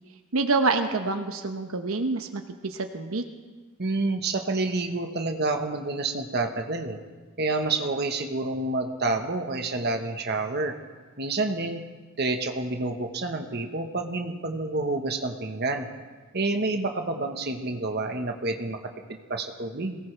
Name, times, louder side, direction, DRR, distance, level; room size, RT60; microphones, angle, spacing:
voice 1, 0.3-3.2, right 3 dB, 85° right, 6 dB, 1.0 m, -27 dB
voice 2, 3.8-7.0 7.4-10.8 11.2-11.8 12.2-15.9 16.3-18.8 19.3-20.0, right 2 dB, 50° right, 4 dB, 1.3 m, -28 dB
22.0 x 18.5 x 3.4 m, 1.3 s
head